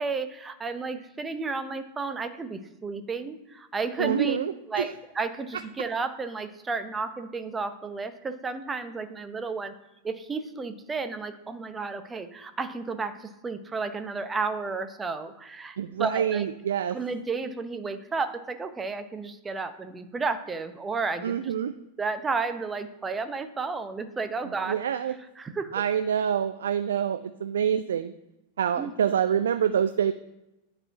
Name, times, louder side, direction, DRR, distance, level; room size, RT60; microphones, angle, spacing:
voice 1, 0.0-4.4 4.7-9.7 10.0-16.4 16.9-21.5 22.0-24.8 25.4-25.7 28.8-28.9, right 4 dB, 15° right, 9 dB, 0.7 m, -32 dB
voice 2, 4.0-4.9 15.8-17.0 21.2-21.7 24.7-25.1 25.7-28.1 28.6-30.1, right 8 dB, 65° right, 11 dB, 0.3 m, -26 dB
9.8 x 4.3 x 4.7 m, 0.93 s
figure-of-eight pair, 90°, 0 cm